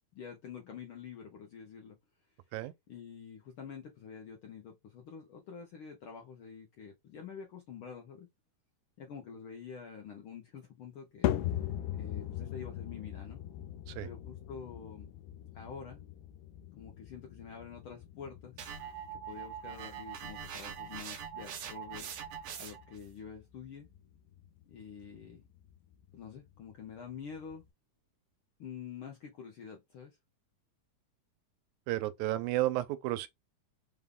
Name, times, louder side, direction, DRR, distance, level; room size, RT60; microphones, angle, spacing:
voice 1, 0.1-2.0 2.9-8.3 9.0-11.3 12.0-13.4 14.0-15.1 15.5-16.0 16.7-18.6 19.1-22.1 22.6-23.9 24.7-25.4 26.1-27.6 28.6-30.2, left 6 dB, 70° left, 1.2 m, -47 dB
sound 1, 11.2-27.7, left 12 dB, 85° left, 2.0 m, -41 dB
sound 2, 18.6-23.0, right 8 dB, 70° right, 1.4 m, -43 dB
voice 2, 31.9-33.3, right 16 dB, 85° right, 2.0 m, -32 dB
5.1 x 2.3 x 3.6 m
omnidirectional pair, 3.4 m